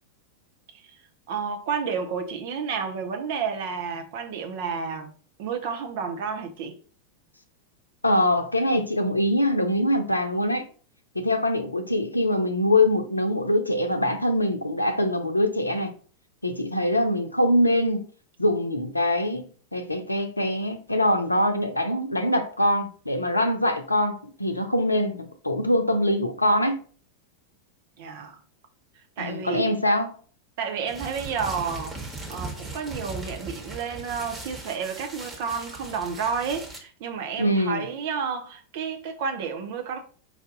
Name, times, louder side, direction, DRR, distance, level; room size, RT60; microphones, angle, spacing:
voice 1, 1.3-5.1 5.4-6.8 28.0-28.4 29.2-29.8 30.6-32.0 32.3-40.0, right 6 dB, 50° right, 0.8 m, -31 dB
voice 2, 8.0-10.7 11.1-15.9 16.4-18.1 18.4-19.4 19.7-26.8 29.2-30.1 37.4-37.8, left 1 dB, 85° left, 0.6 m, -23 dB
sound 1, 30.9-36.8, right 2 dB, 15° right, 1.4 m, -38 dB
4.8 x 2.7 x 3.8 m
figure-of-eight pair, 90°, 0 cm